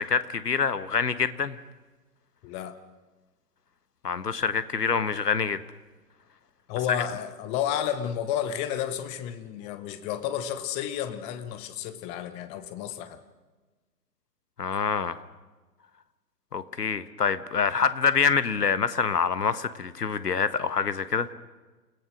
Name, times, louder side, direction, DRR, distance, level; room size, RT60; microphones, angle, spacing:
voice 1, 0.0-1.6 4.0-5.6 14.6-15.2 16.5-21.3, left 6 dB, 70° left, 14 dB, 1.5 m, -26 dB
voice 2, 2.4-2.8 6.7-13.2, left 10 dB, 15° left, 11 dB, 0.8 m, -31 dB
29.5 x 16.5 x 6.4 m, 1.3 s
figure-of-eight pair, 125°, 49 cm